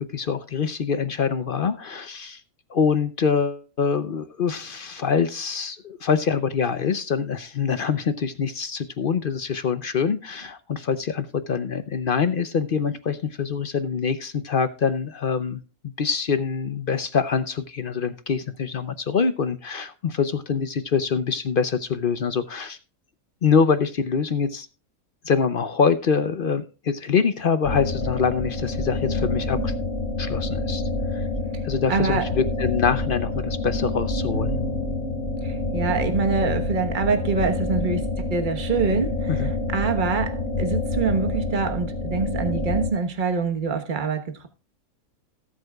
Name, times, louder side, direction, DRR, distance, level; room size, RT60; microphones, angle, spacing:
voice 1, 0.0-2.4 2.7-15.6 16.0-22.8 23.4-24.7 25.2-29.7 30.2-30.8 31.1-31.3 31.6-34.5 39.3-39.5, left 6 dB, 50° left, 0.6 m, -24 dB
sound 1, 27.6-42.9, left 2 dB, 35° left, 2.4 m, -27 dB
voice 2, 31.9-32.2 35.4-44.5, right 5 dB, 35° right, 1.3 m, -25 dB
sound 2, 34.3-43.7, equal, 75° left, 2.8 m, -40 dB
17.5 x 7.9 x 2.3 m
omnidirectional pair, 1.6 m